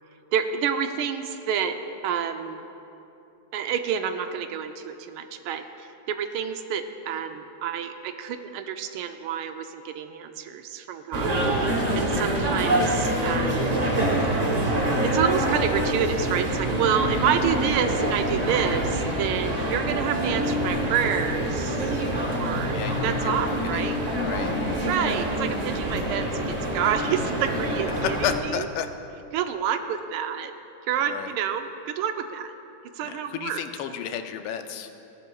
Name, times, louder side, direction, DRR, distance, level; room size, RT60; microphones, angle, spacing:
voice 1, 0.3-1.8 2.0-2.6 3.5-5.7 6.1-11.4 11.9-13.8 15.0-22.0 22.4-24.0 24.9-28.2 28.5-28.7 29.3-30.5 30.9-32.5 33.0-33.6, right 8 dB, 80° right, 8 dB, 1.4 m, -28 dB
sound 1, 11.1-28.4, right 1 dB, 50° right, 0.4 m, -26 dB
voice 2, 22.7-24.5 27.9-28.9 31.0-31.3 33.0-35.0, left 9 dB, 85° left, 7 dB, 1.5 m, -32 dB
16.5 x 10.5 x 2.3 m, 2.8 s
omnidirectional pair, 2.3 m